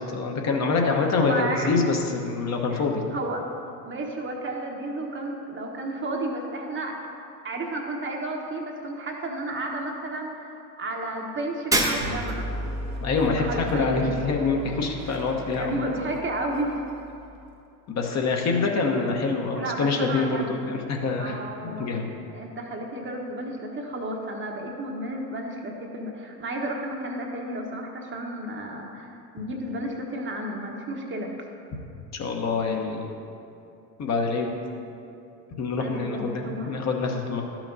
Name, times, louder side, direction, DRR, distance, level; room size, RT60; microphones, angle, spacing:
voice 1, 0.0-3.0 13.0-15.9 17.9-22.0 32.1-33.2 34.0-34.6 35.6-37.4, left 4 dB, 35° left, 1 dB, 1.0 m, -26 dB
voice 2, 1.2-1.7 2.7-2.8 3.1-3.5 3.8-7.0 7.4-12.5 13.3-14.2 15.5-16.8 19.5-20.7 21.2-22.0 22.3-31.5 35.7-36.7, right 1 dB, 25° right, 1 dB, 1.0 m, -32 dB
Shatter, 11.7-12.5, right 1 dB, 5° right, 1.0 m, -25 dB
sound 1, 12.0-17.5, equal, 55° right, 1.3 m, -36 dB
12.5 x 6.0 x 2.6 m, 2.7 s
figure-of-eight pair, 75°, 50 cm